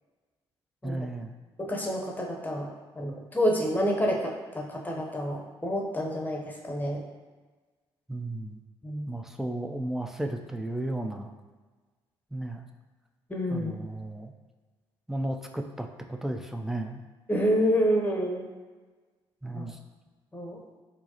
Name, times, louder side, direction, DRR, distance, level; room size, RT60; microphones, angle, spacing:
voice 1, 0.8-1.3 8.1-8.6 9.1-11.3 12.3-12.6 13.5-14.3 15.1-17.0 19.4-19.8, right 1 dB, 5° right, 4 dB, 0.3 m, -34 dB
voice 2, 1.6-2.7 3.0-7.0 8.8-9.1 13.3-13.9 17.3-18.5 19.5-19.6 20.3-20.6, equal, 10° left, -1 dB, 0.7 m, -28 dB
4.5 x 2.0 x 2.8 m, 1.3 s
figure-of-eight pair, 45°, 14 cm